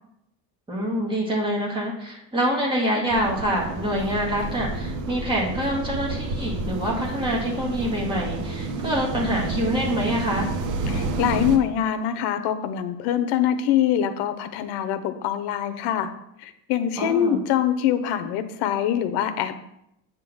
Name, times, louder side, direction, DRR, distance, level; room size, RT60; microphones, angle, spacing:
voice 1, 0.7-10.5 17.0-17.4, equal, 10° right, -3 dB, 1.8 m, -26 dB
sound 1, 3.1-11.6, right 3 dB, 50° right, 0.9 m, -29 dB
voice 2, 10.9-16.1 16.4-19.6, left 10 dB, 85° left, 10 dB, 0.9 m, -24 dB
8.3 x 3.8 x 6.3 m, 0.79 s
cardioid pair, 175°, 40 cm